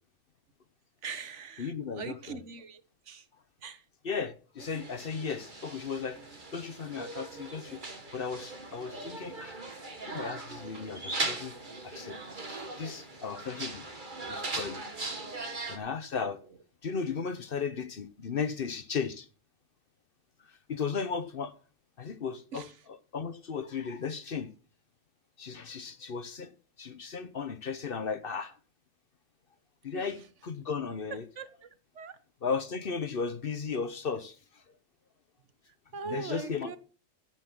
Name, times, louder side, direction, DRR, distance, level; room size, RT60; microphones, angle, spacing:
voice 1, 1.0-3.3 3.6-3.8 22.5-22.7 29.9-30.1 31.4-31.7 31.9-32.2 35.7-36.8, right 6 dB, 70° right, 1.3 m, -42 dB
voice 2, 1.6-2.4 4.0-6.2 6.5-7.8 8.1-9.6 10.0-12.2 12.8-13.9 14.3-14.8 15.7-16.4 16.8-19.3 20.5-21.6 22.0-24.5 25.4-26.5 26.8-28.6 29.8-31.2 32.4-34.6 36.0-36.8, left 5 dB, 50° left, 1.0 m, -35 dB
sound 1, 4.6-15.8, right 2 dB, 40° right, 1.9 m, -39 dB
15.5 x 5.9 x 6.0 m
omnidirectional pair, 1.3 m